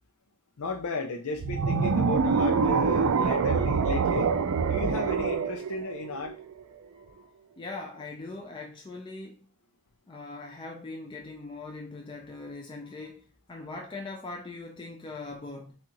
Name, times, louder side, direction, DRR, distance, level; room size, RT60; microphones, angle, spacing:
voice 1, 0.6-6.4 7.1-7.2, left 3 dB, 90° left, 0.5 m, -34 dB
sound 1, 1.4-6.6, right 5 dB, 75° right, 0.4 m, -26 dB
voice 2, 7.6-9.5 10.1-15.8, left 3 dB, 20° left, 0.4 m, -41 dB
6.1 x 2.4 x 3.0 m
head